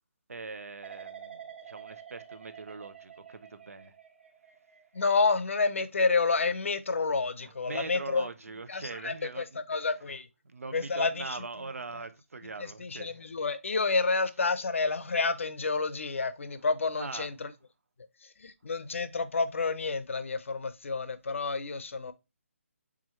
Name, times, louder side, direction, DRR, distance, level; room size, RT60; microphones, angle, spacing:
voice 1, 0.3-3.9 7.7-9.8 10.5-13.2 16.9-17.3, right 3 dB, 85° right, 0.8 m, -42 dB
sound 1, 0.8-7.8 8.2-8.6, right 8 dB, 55° right, 1.5 m, -50 dB
voice 2, 4.9-8.3 8.7-10.3 10.7-11.4 12.4-17.5 18.2-22.1, left 4 dB, 60° left, 0.6 m, -29 dB
4.8 x 3.7 x 3.0 m
hypercardioid pair, 175°, 8 cm